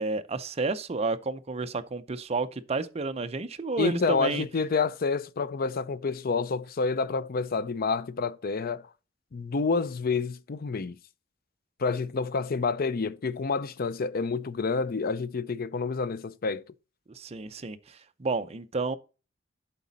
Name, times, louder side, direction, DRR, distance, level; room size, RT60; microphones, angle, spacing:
voice 1, 0.0-4.4 17.1-19.0, right 3 dB, 35° right, 0.5 m, -31 dB
voice 2, 3.8-8.9 9.3-11.0 11.8-16.6, left 4 dB, 50° left, 0.5 m, -28 dB
11.0 x 4.1 x 4.0 m
head